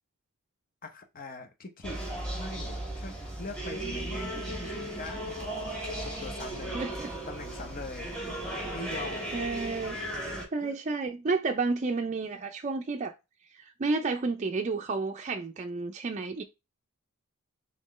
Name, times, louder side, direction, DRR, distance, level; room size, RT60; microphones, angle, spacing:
voice 1, 0.8-2.0 2.3-5.5 6.0-10.0 10.3-10.8, left 3 dB, 40° left, 0.8 m, -43 dB
sound 1, 1.8-10.4, right 1 dB, 5° left, 1.9 m, -36 dB
voice 2, 6.7-7.1 9.3-10.0 10.5-13.1 13.5-16.4, right 3 dB, 35° right, 0.4 m, -31 dB
4.3 x 3.7 x 3.1 m
head